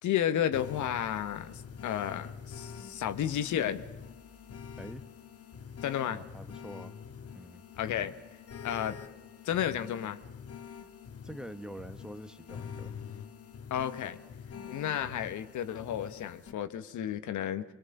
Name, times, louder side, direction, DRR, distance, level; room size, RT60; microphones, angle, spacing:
voice 1, 0.0-3.8 5.8-6.2 7.8-8.1 8.6-9.0 9.4-10.2 13.7-14.2 14.7-17.6, left 10 dB, 75° left, 11 dB, 1.3 m, -32 dB
sound 1, 0.5-16.5, left 7 dB, 55° left, 1.7 m, -46 dB
voice 2, 6.1-7.0 7.3-7.6 11.2-12.9, equal, ahead, 9 dB, 1.2 m, -45 dB
23.0 x 22.5 x 6.7 m, 1.1 s
cardioid pair, 90°, 30 cm